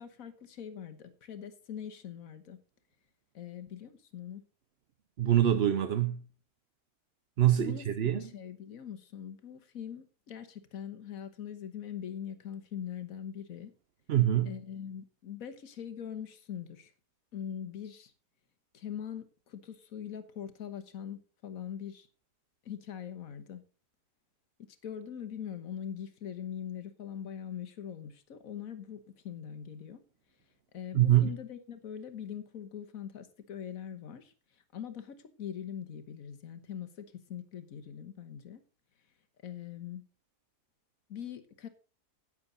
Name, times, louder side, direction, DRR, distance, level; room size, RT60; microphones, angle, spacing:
voice 1, 0.0-2.6 3.3-4.4 7.6-13.7 14.4-16.9 17.3-18.1 18.7-22.1 22.6-23.6 24.8-29.0 29.2-30.0 30.7-34.3 34.7-38.6 39.4-40.0 41.1-41.7, left 9 dB, 60° left, 1.5 m, -42 dB
voice 2, 5.2-6.2 7.4-8.2 14.1-14.5 30.9-31.3, right 11 dB, 55° right, 0.7 m, -25 dB
11.0 x 9.3 x 4.0 m
omnidirectional pair, 1.7 m